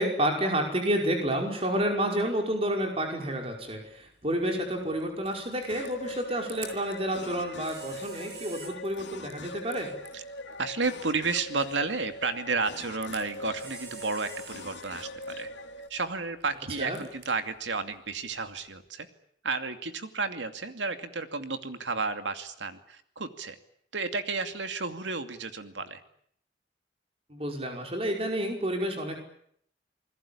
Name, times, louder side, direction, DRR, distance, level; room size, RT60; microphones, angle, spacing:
voice 1, 0.0-9.9 16.8-17.0 27.3-29.2, right 1 dB, 30° right, 2 dB, 5.3 m, -30 dB
Camera, 3.4-18.9, right 5 dB, 65° right, 7.7 m, -51 dB
sound 1, 5.6-15.9, left 2 dB, 90° left, 2.4 m, -42 dB
voice 2, 10.6-15.1 15.4-15.5 15.9-19.1 19.4-23.6 23.9-26.0, right 4 dB, 90° right, 8 dB, 2.6 m, -32 dB
28.0 x 21.0 x 8.7 m, 0.67 s
head